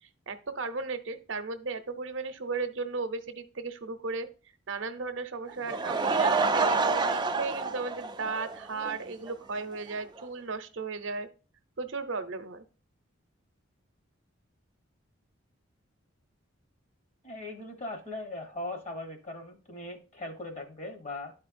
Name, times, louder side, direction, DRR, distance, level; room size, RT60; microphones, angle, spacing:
voice 1, 0.0-11.3 11.8-12.6, right 4 dB, 65° right, 9 dB, 0.7 m, -35 dB
Laughter / Crowd, 5.5-9.0 9.3-9.4 9.9-10.0 10.2-10.3, right 4 dB, 20° right, 0.4 m, -28 dB
voice 2, 17.2-21.3, left 2 dB, 35° left, 5 dB, 1.2 m, -39 dB
11.5 x 4.3 x 2.6 m, 0.36 s
head